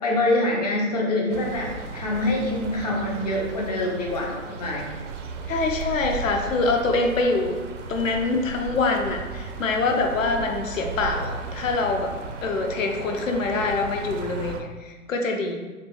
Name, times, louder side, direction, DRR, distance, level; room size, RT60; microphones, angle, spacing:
voice 1, 0.0-4.9, left 1 dB, 30° left, -1 dB, 0.5 m, -25 dB
sound 1, 1.3-14.6, right 4 dB, 60° right, 0.5 m, -35 dB
voice 2, 5.5-7.5 7.9-12.1 12.4-15.6, left 3 dB, 65° left, 3 dB, 0.8 m, -25 dB
3.4 x 2.9 x 3.4 m, 1.3 s
hypercardioid pair, 140°, 42 cm